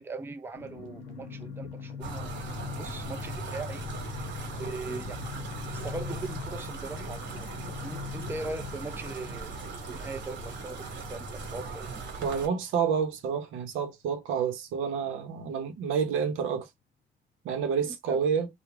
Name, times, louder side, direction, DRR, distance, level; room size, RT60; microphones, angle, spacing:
voice 1, 0.0-2.4 2.8-9.5 9.9-12.0 17.8-18.2, right 3 dB, 10° right, 0.4 m, -40 dB
sound 1, 0.5-12.9 13.2-13.3 13.5-13.8, left 6 dB, 85° left, 0.7 m, -42 dB
sound 2, 2.0-12.5, right 3 dB, 70° right, 1.1 m, -39 dB
voice 2, 12.2-16.7 17.4-18.5, right 6 dB, 85° right, 0.7 m, -29 dB
2.4 x 2.1 x 3.1 m
cardioid pair, 90°, 20 cm